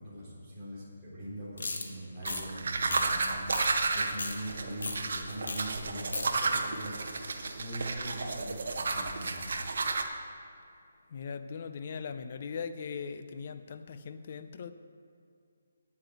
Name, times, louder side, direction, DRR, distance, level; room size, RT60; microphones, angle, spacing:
voice 1, 0.0-3.5 3.9-7.0 7.5-9.6, right 1 dB, 5° right, -13 dB, 3.9 m, -41 dB
sound 1, 1.6-1.8 2.2-2.4 2.9-3.2 3.5-3.7 4.0-4.3 4.8-5.0 5.5-5.6 5.9-6.3, left 3 dB, 70° left, 1.8 m, -35 dB
Cleaning Teeth, 2.3-10.0, right 3 dB, 55° right, 1.2 m, -32 dB
voice 2, 11.1-14.7, left 6 dB, 35° left, 10 dB, 0.6 m, -39 dB
9.7 x 9.0 x 8.1 m, 2.3 s
hypercardioid pair, 175°, 0 cm